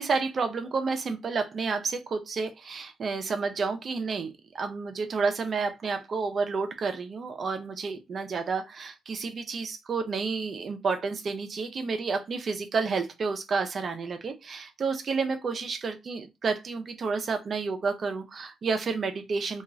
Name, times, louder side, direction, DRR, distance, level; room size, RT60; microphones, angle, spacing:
voice 1, 0.0-19.6, right 4 dB, 45° right, 0.5 m, -30 dB
2.9 x 2.4 x 2.4 m
cardioid pair, 90°, 0 cm